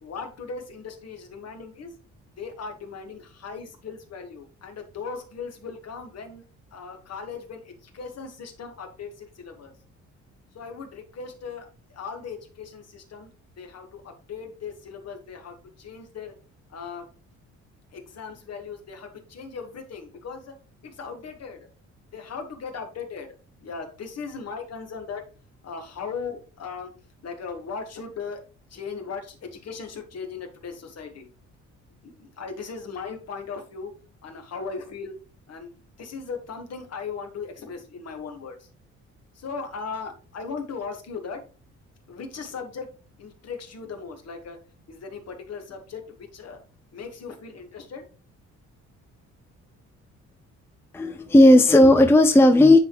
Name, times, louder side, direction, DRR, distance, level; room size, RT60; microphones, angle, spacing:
voice 1, 0.0-1.9 2.4-6.4 6.7-9.8 10.5-13.3 13.6-16.3 16.7-17.1 17.9-21.7 22.1-25.2 25.6-26.9 27.2-28.4 28.7-31.3 32.0-33.9 34.2-35.1 35.5-35.7 36.0-38.7 39.3-41.4 42.1-42.9 43.2-44.6 44.9-46.6 46.9-48.1, left 5 dB, 55° left, 5 dB, 1.6 m, -38 dB
voice 2, 50.9-52.8, left 1 dB, 10° left, 6 dB, 0.5 m, -14 dB
9.6 x 3.7 x 3.0 m, 0.36 s
cardioid pair, 90°, 30 cm